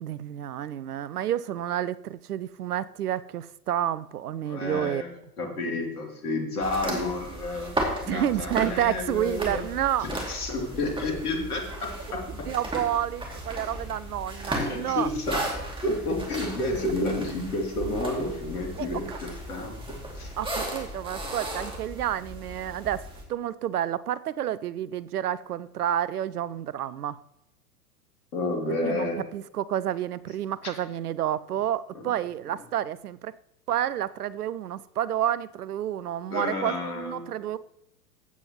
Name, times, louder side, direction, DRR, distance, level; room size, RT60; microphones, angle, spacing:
voice 1, 0.0-5.0 8.1-10.1 12.5-15.1 18.8-18.9 20.4-27.2 28.8-33.3 33.7-37.6, right 11 dB, 75° right, 0.6 m, -29 dB
voice 2, 4.5-5.1 5.4-7.7 8.0-9.6 10.0-12.5 14.5-15.4 15.8-20.3 28.3-29.2 31.9-32.1 36.3-37.3, left 2 dB, 70° left, 3.0 m, -30 dB
sound 1, 6.6-23.2, right 1 dB, 10° right, 2.5 m, -35 dB
15.5 x 8.6 x 3.0 m
figure-of-eight pair, 90°, 46 cm